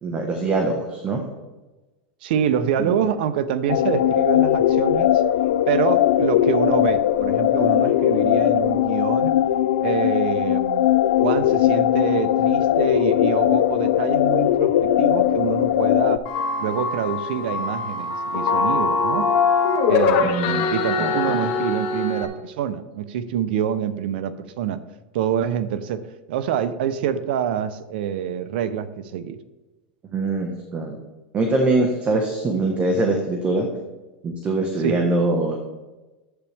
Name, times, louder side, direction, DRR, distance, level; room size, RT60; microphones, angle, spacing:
voice 1, 0.0-1.2 2.8-2.9 20.2-20.7 21.0-21.4 30.1-31.0 31.3-33.7 34.2-35.6, right 2 dB, 25° right, 3 dB, 1.3 m, -23 dB
voice 2, 2.2-5.2 5.7-9.4 9.8-10.8 11.2-16.2 16.6-19.3 19.9-24.8 25.1-29.4 34.8-35.0, right 9 dB, 70° right, 13 dB, 0.7 m, -26 dB
sound 1, 3.7-16.2, left 12 dB, 80° left, 0.4 m, -19 dB
sound 2, 16.3-22.3, left 4 dB, 50° left, 1.6 m, -22 dB
11.5 x 8.3 x 3.5 m, 1.1 s
supercardioid pair, 145°, 6 cm